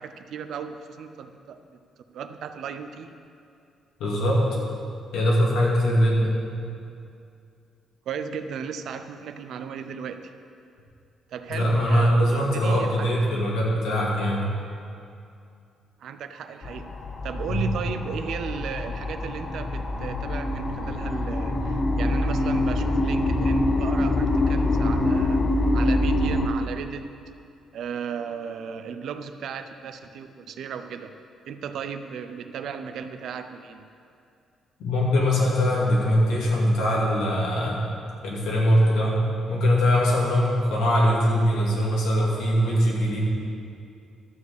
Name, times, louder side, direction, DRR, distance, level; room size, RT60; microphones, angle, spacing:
voice 1, 0.0-1.8 2.1-3.1 8.1-10.3 11.3-13.1 16.0-16.9 17.2-25.5 25.7-27.1 27.7-31.1 31.5-33.8, right 7 dB, 75° right, 9 dB, 0.6 m, -35 dB
voice 2, 4.0-4.4 5.1-6.3 11.5-14.4 17.5-17.7 34.8-37.8 38.2-39.2 39.5-43.2, equal, 85° left, -4 dB, 2.6 m, -22 dB
sound 1, 16.6-26.5, left 1 dB, 35° left, 0.9 m, -25 dB
12.5 x 5.0 x 8.1 m, 2.5 s
cardioid pair, 90°, 0 cm